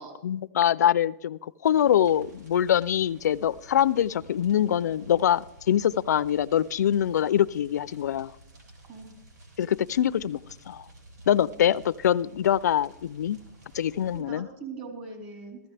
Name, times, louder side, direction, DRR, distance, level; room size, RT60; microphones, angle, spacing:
voice 1, 0.2-8.3 9.6-10.4 10.7-10.8 11.3-13.4 13.7-14.5, left 10 dB, 75° left, 18 dB, 0.4 m, -24 dB
sound 1, 1.6-14.2, right 1 dB, 80° right, 3.7 m, -52 dB
voice 2, 14.1-15.6, right 4 dB, 35° right, 0 dB, 3.7 m, -41 dB
15.5 x 14.0 x 3.3 m, 0.84 s
hypercardioid pair, 165°, 9 cm